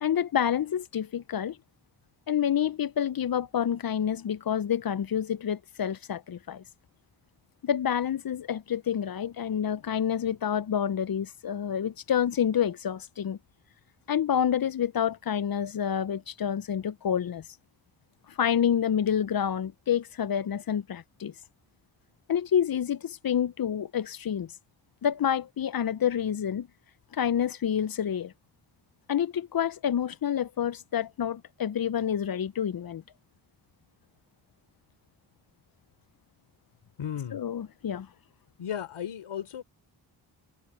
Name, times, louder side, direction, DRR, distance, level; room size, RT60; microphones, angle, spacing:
voice 1, 0.0-1.6 2.3-6.6 7.6-13.4 14.1-17.4 18.4-21.3 22.3-24.5 25.0-26.7 27.1-28.3 29.1-33.0 37.3-38.1, left 9 dB, 45° left, 0.7 m, -28 dB
voice 2, 37.0-37.4 38.6-39.6, left 9 dB, 85° left, 4.1 m, -35 dB
cardioid pair, 50°, 48 cm